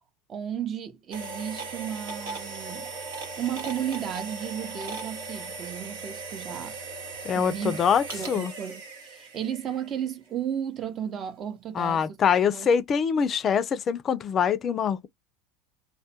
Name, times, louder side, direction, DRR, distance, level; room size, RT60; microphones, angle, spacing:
voice 1, 0.3-2.9 3.4-6.8 7.3-7.8 8.1-12.2 12.5-12.7, right 9 dB, 35° right, 0.6 m, -34 dB
sound 1, 1.1-10.0, right 3 dB, 90° right, 0.9 m, -38 dB
voice 2, 7.2-8.5 11.7-15.1, left 7 dB, 35° left, 0.4 m, -24 dB
2.2 x 2.1 x 2.7 m
supercardioid pair, 110°, 0 cm